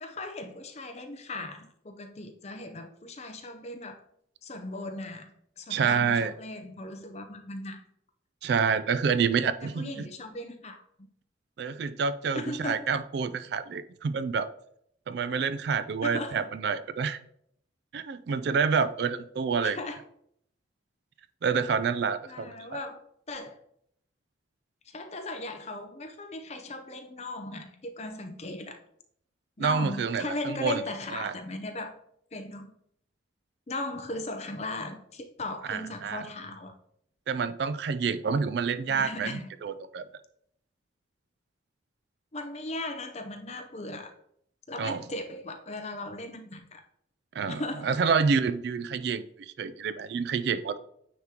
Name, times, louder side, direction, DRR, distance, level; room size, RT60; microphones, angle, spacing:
voice 1, 0.0-4.0 4.4-7.8 9.6-10.8 12.3-12.9 16.0-16.5 19.6-20.0 22.2-23.0 23.3-23.6 24.9-28.8 29.6-32.0 32.3-32.7 33.7-36.8 38.9-39.5 42.3-44.1 44.7-46.8 47.5-47.9, left 2 dB, 35° left, 6 dB, 0.6 m, -38 dB
voice 2, 5.7-6.3 8.4-10.1 11.6-14.5 15.1-17.2 17.9-19.8 21.4-22.8 29.6-30.8 31.1-31.3 35.7-36.3 37.3-40.0 44.8-45.0 47.3-50.8, right 5 dB, 60° right, 13 dB, 0.3 m, -28 dB
9.3 x 3.7 x 2.9 m, 0.70 s
head